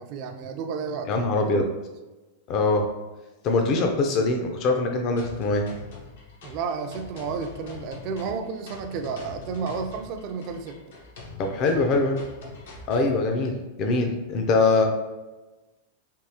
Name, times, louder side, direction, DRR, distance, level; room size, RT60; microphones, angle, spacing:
voice 1, 0.0-1.6 6.4-10.8, right 5 dB, 45° right, 6 dB, 0.3 m, -32 dB
voice 2, 1.1-1.7 2.5-2.9 3.4-5.7 11.4-12.2 12.9-14.9, left 3 dB, 40° left, 3 dB, 0.4 m, -23 dB
sound 1, 5.2-13.2, left 3 dB, 85° left, 0.8 m, -43 dB
3.5 x 2.4 x 2.7 m, 1.1 s
supercardioid pair, 140°, 0 cm